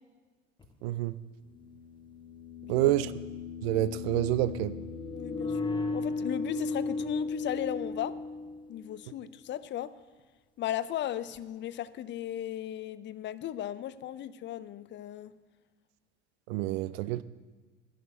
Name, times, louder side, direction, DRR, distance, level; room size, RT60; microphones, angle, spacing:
sound 1, 0.6-0.7 2.2-9.1, left 3 dB, 15° left, 1.2 m, -35 dB
voice 1, 0.8-1.1 2.7-3.1 3.6-4.7 16.5-17.2, right 15 dB, 60° right, 17 dB, 0.5 m, -28 dB
voice 2, 5.1-5.5 5.9-8.1 8.7-9.9 10.6-15.3, left 11 dB, 30° left, 15 dB, 0.5 m, -36 dB
11.0 x 6.6 x 8.7 m, 1.4 s
figure-of-eight pair, 70°, 35 cm